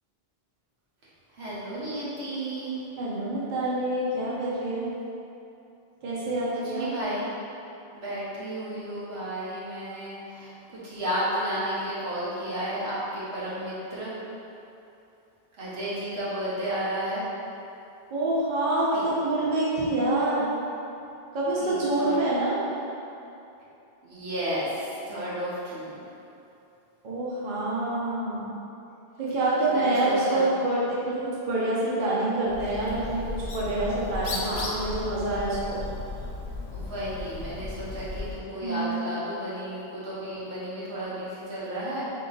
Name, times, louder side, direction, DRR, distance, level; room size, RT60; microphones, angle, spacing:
voice 1, 1.4-2.8 6.5-7.3 7.9-14.1 15.6-17.2 18.9-19.0 21.6-22.2 24.0-26.0 29.6-30.5 34.3-34.8 36.7-42.1, equal, 90° right, -8 dB, 1.3 m, -33 dB
voice 2, 3.0-4.9 6.0-6.9 18.1-20.5 21.3-22.6 27.0-28.5 29.2-31.2 31.5-35.8 38.6-39.0, right 2 dB, 55° right, -7 dB, 0.9 m, -26 dB
Bird, 32.5-38.4, left 3 dB, 85° left, 0.9 m, -35 dB
3.7 x 2.8 x 3.8 m, 2.8 s
omnidirectional pair, 1.0 m